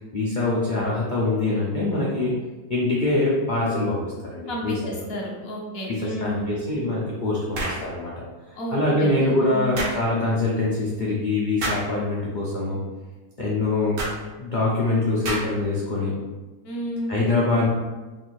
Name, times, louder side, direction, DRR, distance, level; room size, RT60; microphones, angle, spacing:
voice 1, 0.0-2.3 2.7-4.9 5.9-8.1 8.5-12.8 13.4-14.1 14.4-16.1 17.1-17.7, left 2 dB, 70° left, -6 dB, 0.4 m, -24 dB
voice 2, 4.5-6.5 8.6-9.8 16.6-17.2, equal, 50° left, -2 dB, 0.8 m, -31 dB
sound 1, 7.5-7.9 9.8-10.0 11.6-11.9 14.0-14.2 15.2-15.6, right 1 dB, 80° right, 1.6 m, -28 dB
3.5 x 2.5 x 4.5 m, 1.2 s
omnidirectional pair, 1.8 m